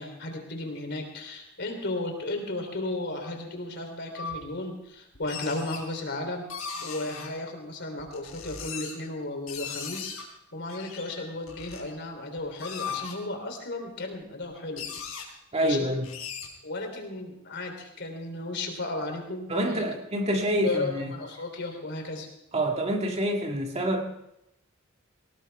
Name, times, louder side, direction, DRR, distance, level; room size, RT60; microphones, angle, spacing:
voice 1, 0.0-6.5 6.8-10.2 10.5-14.9 15.6-15.9 16.6-19.9 20.6-22.3, left 2 dB, 55° left, 4 dB, 3.4 m, -34 dB
sound 1, 4.1-4.4 5.2-5.8 6.5-7.3 8.0-9.1 9.5-10.2 10.7-11.8 12.4-13.2 14.1-14.2 14.4-14.5 14.8-15.2 16.0-16.5, left 6 dB, 90° left, 3.7 m, -38 dB
voice 2, 15.5-16.1 19.5-21.1 22.5-24.0, equal, 30° right, 2 dB, 1.8 m, -27 dB
19.0 x 18.5 x 3.5 m, 0.83 s
head